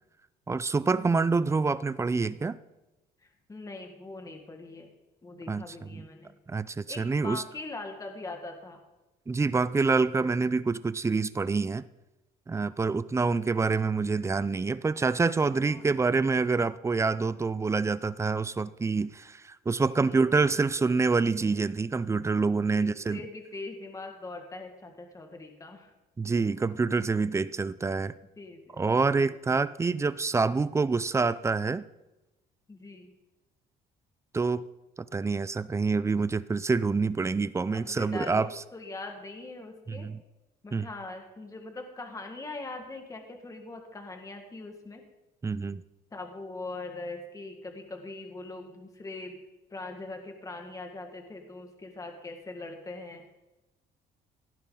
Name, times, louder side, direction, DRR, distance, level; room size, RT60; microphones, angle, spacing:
voice 1, 0.5-2.6 5.5-5.6 5.9-6.0 6.5-7.4 9.3-11.8 12.5-23.2 26.2-28.1 28.8-31.9 34.3-34.7 35.1-38.5 39.9-40.2 40.7-40.9 45.4-45.8, right 4 dB, 15° right, 16 dB, 0.5 m, -26 dB
voice 2, 3.2-4.9 5.2-6.4 6.9-8.8 13.4-13.5 15.6-15.8 20.1-20.3 22.6-25.9 28.4-29.6 32.7-33.1 37.7-40.1 40.6-45.0 46.1-49.4 49.7-53.2, left 2 dB, 20° left, 3 dB, 1.8 m, -42 dB
17.0 x 10.5 x 3.9 m, 1.0 s
cardioid pair, 110°, 17 cm